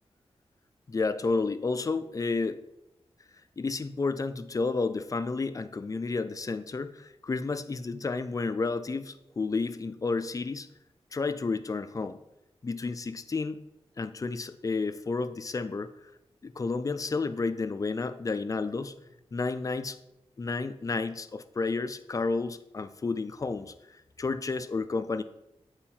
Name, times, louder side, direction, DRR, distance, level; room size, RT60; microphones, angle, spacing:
voice 1, 0.9-2.6 3.6-10.7 11.1-12.2 12.6-13.6 14.0-15.9 16.4-19.0 19.3-20.0 20.4-25.2, left 4 dB, 30° left, 11 dB, 0.4 m, -31 dB
7.3 x 4.8 x 4.3 m, 0.85 s
wide cardioid pair, 120°, 11 cm